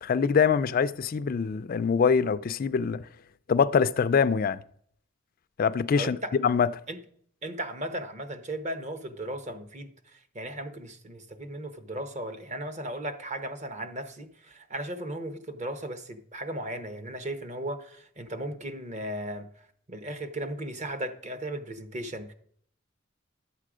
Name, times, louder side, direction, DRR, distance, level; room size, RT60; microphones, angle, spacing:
voice 1, 0.0-3.0 3.5-4.6 5.6-6.2 6.4-6.7, left 6 dB, 45° left, 0.4 m, -24 dB
voice 2, 5.9-6.3 6.9-7.0 7.4-22.3, right 1 dB, 35° right, 1.0 m, -36 dB
11.0 x 7.6 x 4.9 m
head